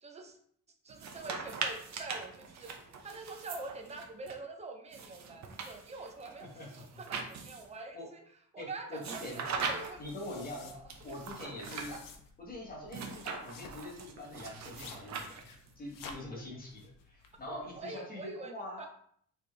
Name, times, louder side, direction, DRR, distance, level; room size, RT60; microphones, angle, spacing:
voice 1, 0.0-0.4 0.8-2.7 3.0-8.2 8.5-10.8 11.4-12.0 17.5-18.9, right 3 dB, 20° right, 4 dB, 0.6 m, -45 dB
sound 1, 0.9-4.3 4.9-7.8 9.0-10.1 10.9-12.0 12.9-15.7, right 5 dB, 55° right, 0.7 m, -41 dB
voice 2, 6.4-6.9 7.9-8.1 8.6-9.4 10.0-10.7 11.0-11.9 12.4-15.4 15.8-18.9, left 1 dB, 25° left, -2 dB, 1.3 m, -44 dB
sound 2, 9.7-17.8, left 4 dB, 75° left, 0.7 m, -53 dB
4.3 x 3.3 x 3.3 m, 0.63 s
cardioid pair, 155°, 33 cm